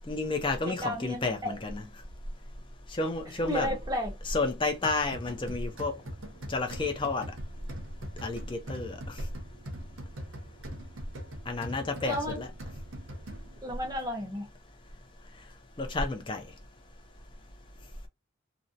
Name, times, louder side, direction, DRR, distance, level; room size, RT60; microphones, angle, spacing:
voice 1, 0.1-1.8 2.9-3.7 4.2-6.0 6.5-7.3 8.2-9.0 11.5-12.5 15.8-16.4, left 3 dB, 25° left, 0.4 m, -31 dB
voice 2, 0.6-1.6 3.5-4.1 12.0-12.4 13.6-14.5, equal, 15° right, 0.7 m, -33 dB
sound 1, 4.8-13.7, equal, 60° right, 0.7 m, -43 dB
2.6 x 2.0 x 2.4 m
head